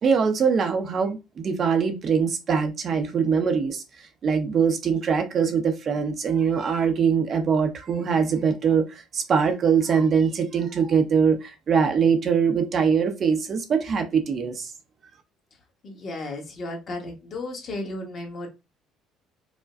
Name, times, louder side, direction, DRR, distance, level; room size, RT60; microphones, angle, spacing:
voice 1, 0.0-3.8 4.2-8.8 9.1-14.7, right 6 dB, 40° right, 0.6 m, -22 dB
voice 2, 15.8-18.5, left 2 dB, 40° left, 1.3 m, -34 dB
4.9 x 2.2 x 2.5 m
cardioid pair, 125°, 0 cm